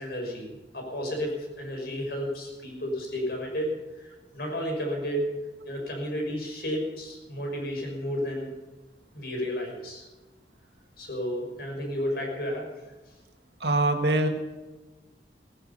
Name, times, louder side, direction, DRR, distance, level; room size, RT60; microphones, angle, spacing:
voice 1, 0.0-5.3 5.6-8.5 9.1-10.1 11.0-12.7, equal, 60° left, 1 dB, 5.9 m, -32 dB
voice 2, 13.6-14.3, right 2 dB, 70° right, 5 dB, 1.9 m, -23 dB
16.5 x 15.0 x 5.5 m, 1.2 s
head